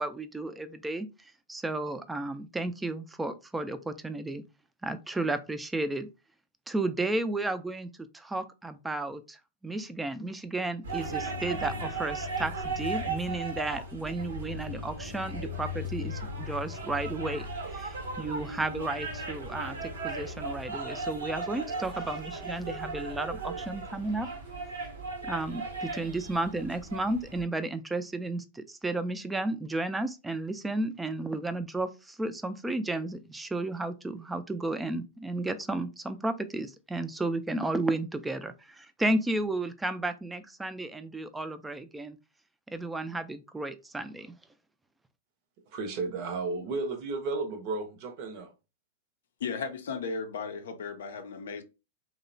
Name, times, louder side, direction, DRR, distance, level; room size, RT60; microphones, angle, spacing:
voice 1, 0.0-4.4 4.8-6.1 6.7-24.3 25.2-42.2 42.7-44.4, right 2 dB, 10° right, 0.3 m, -33 dB
sound 1, 10.8-27.4, right 2 dB, 85° right, 0.8 m, -36 dB
voice 2, 45.7-48.5, right 3 dB, 50° right, 0.6 m, -33 dB
voice 3, 49.4-51.6, left 5 dB, 75° left, 0.5 m, -35 dB
2.8 x 2.0 x 2.6 m
hypercardioid pair, 115°, 0 cm